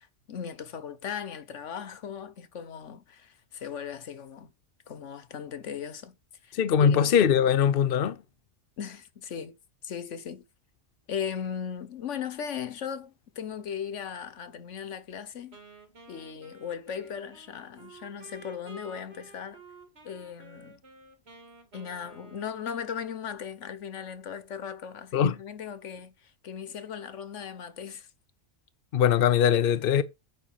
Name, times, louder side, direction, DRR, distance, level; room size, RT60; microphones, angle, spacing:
voice 1, 0.0-4.5 4.9-6.2 6.4-7.1 8.8-9.6 9.8-10.4 11.1-15.6 16.1-19.6 20.0-20.8 21.7-28.1, left 7 dB, 80° left, 1.3 m, -38 dB
voice 2, 6.5-8.2 25.1-25.4 28.9-30.0, left 8 dB, 55° left, 0.8 m, -21 dB
Wind instrument woodwind instrument, 15.5-23.4, right 3 dB, 60° right, 2.2 m, -52 dB
8.7 x 5.6 x 5.6 m
omnidirectional pair, 1.2 m